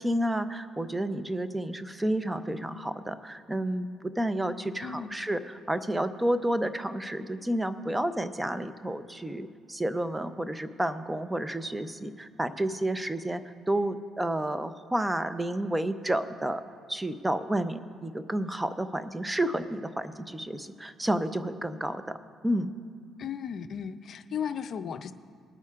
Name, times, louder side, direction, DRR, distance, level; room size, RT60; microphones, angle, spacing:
voice 1, 0.0-16.6 16.9-22.2 22.4-22.7, right 1 dB, 10° right, 11 dB, 0.6 m, -30 dB
voice 2, 4.8-5.2 23.2-25.1, left 7 dB, 60° left, 10 dB, 0.5 m, -35 dB
21.0 x 8.8 x 2.5 m, 2.3 s
cardioid pair, 75°, 0 cm